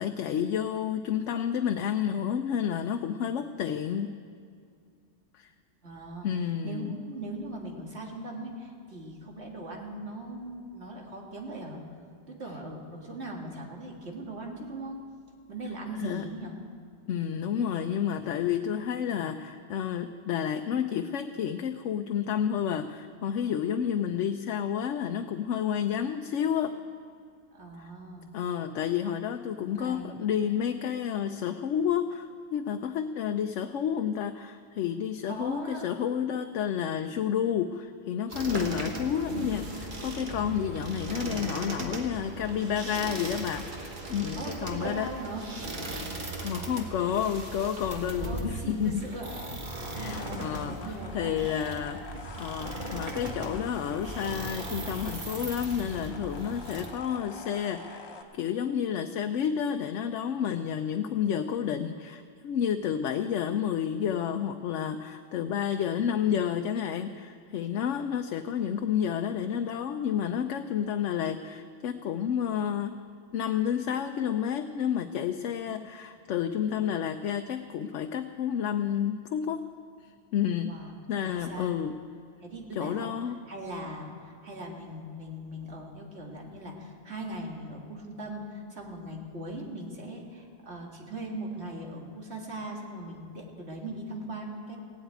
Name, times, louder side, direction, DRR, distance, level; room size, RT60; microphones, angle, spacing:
voice 1, 0.0-4.1 5.3-5.5 6.2-7.0 16.0-16.3 17.1-26.8 27.8-27.9 28.3-45.1 46.4-49.1 49.9-58.1 58.3-72.9 73.3-79.6 80.3-80.7 81.1-82.0 82.7-83.4, left 8 dB, 85° left, 6 dB, 0.9 m, -30 dB
voice 2, 5.8-6.3 6.6-11.8 12.3-15.0 15.5-16.6 27.5-28.3 29.6-30.2 35.3-35.9 44.4-45.4 48.2-49.3 49.7-51.4 75.5-75.7 80.7-80.9 81.2-81.7 82.4-83.1 83.5-94.8, right 1 dB, 65° right, 0 dB, 2.2 m, -40 dB
sound 1, 38.3-56.9, right 2 dB, 45° right, 1.5 m, -37 dB
sound 2, 49.2-58.2, left 3 dB, 65° left, 1.3 m, -46 dB
16.5 x 8.1 x 9.1 m, 2.2 s
omnidirectional pair, 1.2 m